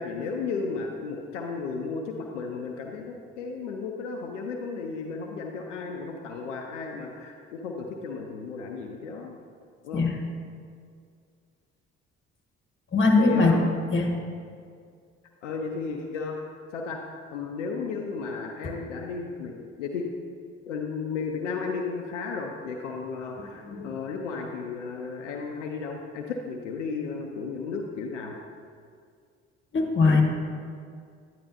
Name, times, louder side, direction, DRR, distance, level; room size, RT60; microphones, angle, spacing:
voice 1, 0.0-9.4 9.8-10.0 13.2-13.6 15.4-17.0 17.3-20.1 20.7-28.3, left 4 dB, 80° left, 1 dB, 0.6 m, -34 dB
voice 2, 12.9-13.6 13.9-14.1 23.6-23.9 29.7-30.2, left 3 dB, 35° left, 2 dB, 1.5 m, -21 dB
10.0 x 9.2 x 2.9 m, 2.2 s
figure-of-eight pair, 50°, 36 cm